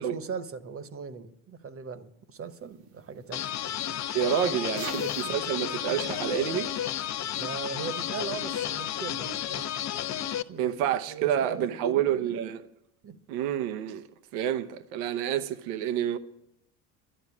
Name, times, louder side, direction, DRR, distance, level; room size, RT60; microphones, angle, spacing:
voice 1, 0.0-3.5 4.8-5.4 5.8-6.2 7.3-9.7 10.5-12.5 13.0-13.2, right 5 dB, 30° right, 1.1 m, -40 dB
sound 1, 2.4-7.5, right 8 dB, 65° right, 1.5 m, -49 dB
sound 2, 3.3-10.4, left 11 dB, 40° left, 0.7 m, -32 dB
voice 2, 4.1-6.7 10.6-12.6 13.3-14.0 14.3-16.2, right 9 dB, 80° right, 0.9 m, -28 dB
11.5 x 11.0 x 7.2 m
supercardioid pair, 95°, 42 cm